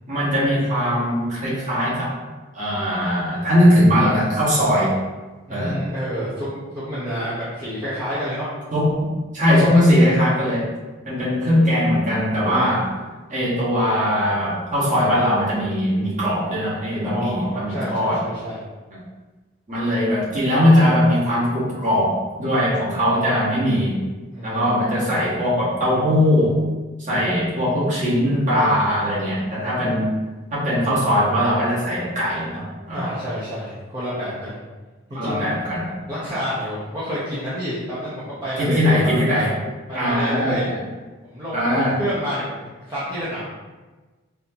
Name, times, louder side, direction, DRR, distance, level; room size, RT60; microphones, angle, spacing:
voice 1, 0.1-2.1 2.5-4.9 5.5-5.7 8.7-9.1 9.3-10.7 11.0-12.9 13.3-18.2 19.7-24.0 24.4-26.6 27.0-30.1 30.5-33.0 35.1-35.9 38.6-39.5 39.9-40.8 41.5-42.0, equal, 35° right, -8 dB, 1.2 m, -20 dB
voice 2, 5.5-8.5 17.0-18.6 24.3-24.9 32.9-34.6 35.1-35.5 36.1-39.5 39.9-40.7 41.2-43.4, equal, 20° right, -12 dB, 0.7 m, -29 dB
4.1 x 2.7 x 2.7 m, 1.3 s
head